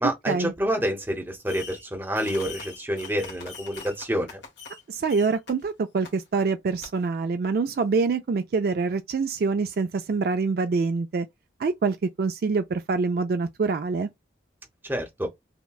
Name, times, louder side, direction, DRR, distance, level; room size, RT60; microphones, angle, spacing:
voice 1, 0.0-4.4 14.8-15.3, equal, 10° right, 0.8 m, -28 dB
Fireworks, 1.5-1.9 2.1-4.8 5.1-5.5 6.0-6.1 6.8-6.9, left 5 dB, 70° left, 1.3 m, -42 dB
voice 2, 4.9-11.3 11.6-14.1, right 4 dB, 50° right, 0.3 m, -25 dB
5.6 x 2.1 x 2.3 m
head